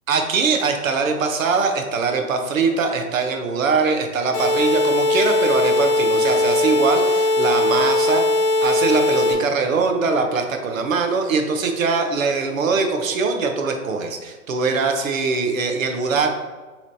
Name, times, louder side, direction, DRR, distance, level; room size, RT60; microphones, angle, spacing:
voice 1, 0.1-16.3, right 4 dB, 60° right, 5 dB, 0.7 m, -22 dB
sound 1, 4.3-9.3, left 2 dB, 45° left, 0.9 m, -19 dB
6.0 x 3.1 x 2.6 m, 1.3 s
hypercardioid pair, 170°, 46 cm